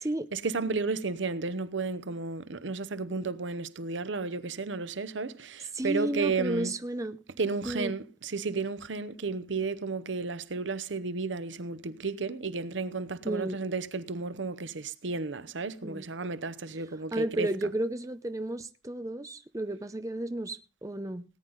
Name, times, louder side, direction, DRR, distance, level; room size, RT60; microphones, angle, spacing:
voice 1, 0.3-6.7 7.4-17.5, right 4 dB, 90° right, 0.8 m, -33 dB
voice 2, 5.7-7.2 7.6-7.9 13.2-13.6 15.8-16.1 17.1-21.2, right 1 dB, 15° right, 0.6 m, -32 dB
18.5 x 9.5 x 3.9 m
head